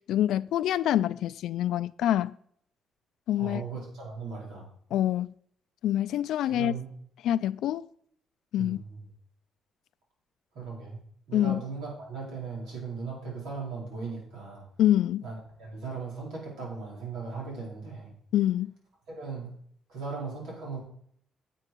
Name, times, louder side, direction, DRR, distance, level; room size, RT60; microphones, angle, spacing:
voice 1, 0.1-2.4 3.3-3.6 4.9-5.3 5.8-6.7 7.2-7.9 8.5-8.8 11.3-11.6 14.8-15.2 18.3-18.7, left 12 dB, 80° left, 0.4 m, -26 dB
voice 2, 3.4-4.7 6.4-6.9 8.6-9.0 10.5-11.0 11.3-14.6 15.2-18.1 19.1-19.5 19.9-20.8, right 4 dB, 90° right, 4.7 m, -38 dB
9.9 x 8.0 x 4.6 m
cardioid pair, 90°, 0 cm